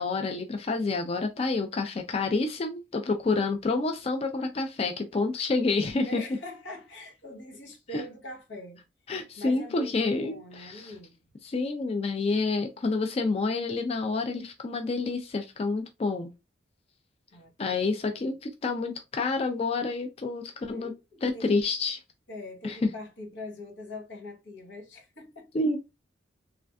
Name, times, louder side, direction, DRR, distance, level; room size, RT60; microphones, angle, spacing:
voice 1, 0.0-6.2 7.9-8.0 9.1-10.9 11.4-16.3 17.6-20.9 21.2-22.0 22.6-22.9 25.5-25.8, left 3 dB, 35° left, 0.3 m, -28 dB
voice 2, 5.9-8.8 9.4-11.2 17.3-18.3 20.7-21.5 22.3-25.5, left 1 dB, 85° left, 1.0 m, -43 dB
3.3 x 2.5 x 2.2 m
head